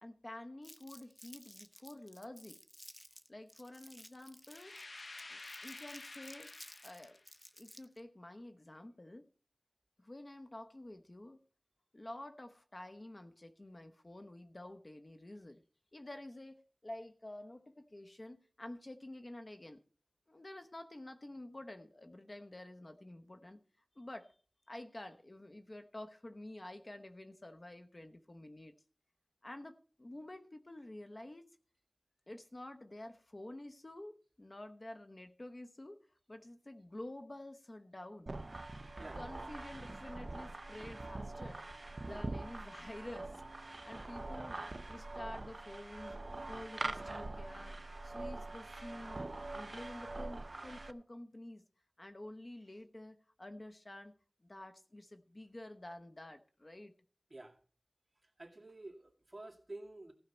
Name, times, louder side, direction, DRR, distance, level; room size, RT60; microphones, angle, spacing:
voice 1, 0.0-2.6 3.3-6.5 6.8-7.2 7.6-9.3 10.0-11.4 11.9-15.6 15.9-19.8 20.3-23.6 24.0-24.3 24.7-28.7 29.4-31.5 32.3-38.3 39.1-41.6 42.0-44.6 44.9-46.2 46.4-47.8 48.0-49.2 49.5-51.6 52.0-54.1 54.4-56.9, left 1 dB, 45° left, 1.0 m, -50 dB
Crumpling crinkling, 0.6-8.0, equal, 15° left, 1.1 m, -55 dB
sound 1, 4.5-7.3, left 2 dB, 70° left, 0.6 m, -50 dB
sound 2, 38.3-50.9, right 2 dB, 55° right, 0.6 m, -44 dB
voice 2, 58.2-60.1, right 2 dB, 35° right, 2.3 m, -50 dB
15.0 x 5.7 x 6.9 m
wide cardioid pair, 45°, 0 cm